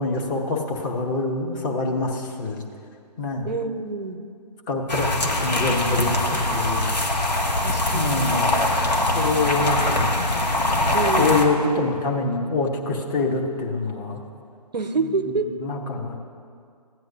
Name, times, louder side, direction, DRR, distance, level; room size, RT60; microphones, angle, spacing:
voice 1, 0.0-2.6 3.2-3.5 4.7-6.9 7.9-8.6 9.1-10.1 11.2-14.2 15.3-16.2, left 3 dB, 30° left, 0 dB, 1.0 m, -25 dB
voice 2, 3.4-4.2 7.6-8.4 10.9-11.4 14.7-15.5, right 4 dB, 85° right, 9 dB, 0.7 m, -27 dB
sound 1, 4.9-11.4, left 1 dB, 80° left, 1.4 m, -22 dB
16.0 x 9.5 x 2.7 m, 2.3 s
figure-of-eight pair, 140°, 21 cm